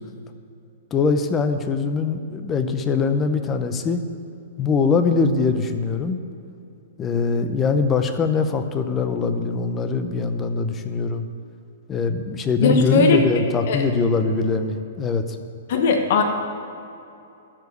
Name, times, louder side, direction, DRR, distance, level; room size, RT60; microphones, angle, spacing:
voice 1, 0.9-4.0 4.6-6.2 7.0-11.3 11.9-15.4, left 4 dB, 20° left, 8 dB, 0.6 m, -22 dB
voice 2, 12.6-13.2 13.7-13.8 15.7-16.2, left 4 dB, 55° left, 4 dB, 1.1 m, -18 dB
13.0 x 4.9 x 8.1 m, 2.7 s
hypercardioid pair, 155°, 0 cm